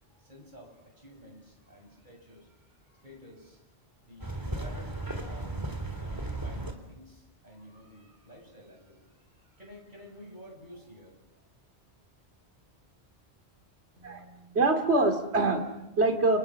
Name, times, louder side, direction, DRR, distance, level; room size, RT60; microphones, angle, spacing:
voice 1, 0.1-3.6 4.0-11.4, equal, 45° right, 1 dB, 7.7 m, -52 dB
sound 1, 4.2-6.7, right 2 dB, 20° right, 3.3 m, -35 dB
voice 2, 14.0-16.4, right 2 dB, 80° right, 5 dB, 2.9 m, -25 dB
29.0 x 28.5 x 6.4 m, 0.98 s
omnidirectional pair, 1.1 m